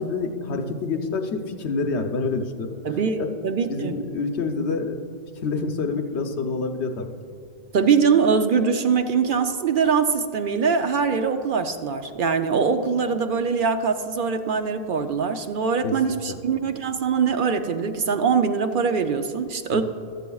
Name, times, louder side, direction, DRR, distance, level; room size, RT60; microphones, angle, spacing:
voice 1, 0.0-2.8 3.2-3.3 3.7-5.0 5.4-7.1 15.8-15.9 16.3-16.4 19.7-19.8, left 4 dB, 85° left, 5 dB, 1.1 m, -27 dB
voice 2, 2.8-4.0 7.7-19.8, right 5 dB, 60° right, 7 dB, 0.7 m, -22 dB
15.0 x 12.5 x 2.3 m, 2.5 s
omnidirectional pair, 1.1 m